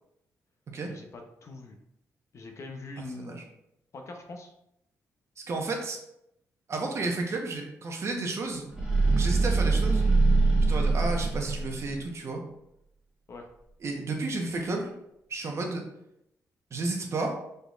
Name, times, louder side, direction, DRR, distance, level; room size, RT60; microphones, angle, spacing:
voice 1, 0.9-1.8 2.3-3.5 3.9-4.5 13.3-13.5, left 2 dB, 50° left, 4 dB, 0.7 m, -42 dB
voice 2, 5.5-6.0 6.7-8.7 9.1-10.1 10.7-12.4 13.8-14.9 15.3-15.8 16.7-17.3, right 3 dB, 50° right, 2 dB, 1.0 m, -32 dB
sound 1, 8.7-12.0, right 3 dB, 10° right, 1.6 m, -23 dB
5.4 x 4.1 x 2.4 m, 0.80 s
cardioid pair, 95°, 6 cm